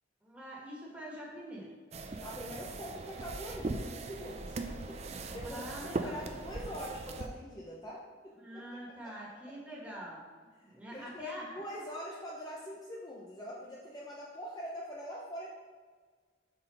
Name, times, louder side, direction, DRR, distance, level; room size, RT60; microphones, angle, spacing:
voice 1, 0.2-1.7 5.4-6.2 8.4-10.2 10.6-11.4, right 1 dB, 5° right, -5 dB, 1.6 m, -45 dB
sound 1, 1.9-7.3, right 3 dB, 35° right, 0.4 m, -40 dB
voice 2, 2.2-5.7 6.0-8.6 9.0-9.1 10.9-15.5, equal, 20° left, -4 dB, 0.7 m, -43 dB
5.5 x 4.3 x 5.3 m, 1.5 s
head